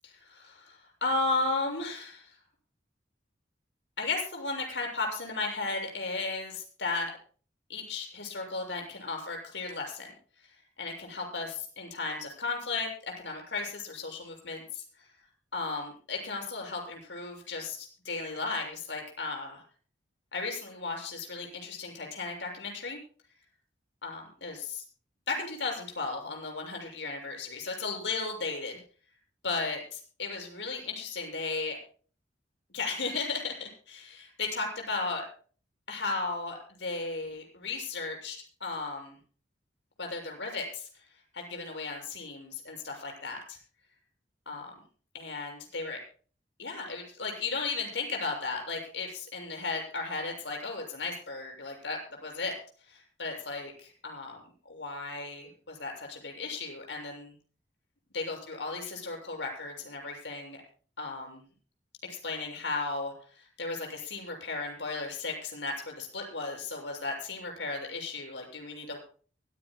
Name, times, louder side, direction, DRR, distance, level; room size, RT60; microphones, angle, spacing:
voice 1, 0.0-2.3 4.0-7.1 7.7-10.1 10.4-10.5 10.8-12.9 13.2-15.1 15.5-19.6 20.3-23.0 24.0-24.8 25.3-28.8 29.4-31.8 32.7-35.3 35.9-39.2 40.0-41.0 41.3-43.6 44.5-44.7 45.1-46.0 46.6-52.5 52.9-54.4 54.7-57.3 58.1-60.6 61.0-61.5 62.1-69.0, left 3 dB, 80° left, 2 dB, 7.0 m, -35 dB
24.0 x 15.5 x 2.2 m, 0.41 s
head